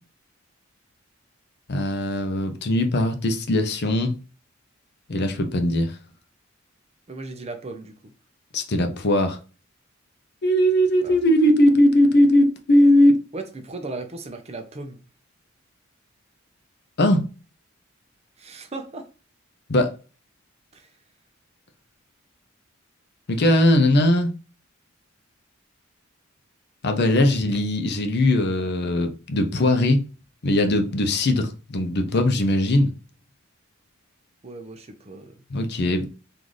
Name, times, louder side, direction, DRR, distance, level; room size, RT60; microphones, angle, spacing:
voice 1, 1.7-4.2 5.1-6.0 8.5-9.4 10.4-13.2 17.0-17.2 19.7-19.9 23.3-24.3 26.8-30.0 30.4-32.9 35.5-36.1, left 1 dB, 55° left, 0.6 m, -19 dB
voice 2, 7.1-8.1 11.0-11.2 13.3-15.0 18.4-19.1 20.7-20.9 34.4-35.4, right 3 dB, 30° right, 0.6 m, -36 dB
3.8 x 2.6 x 3.1 m
head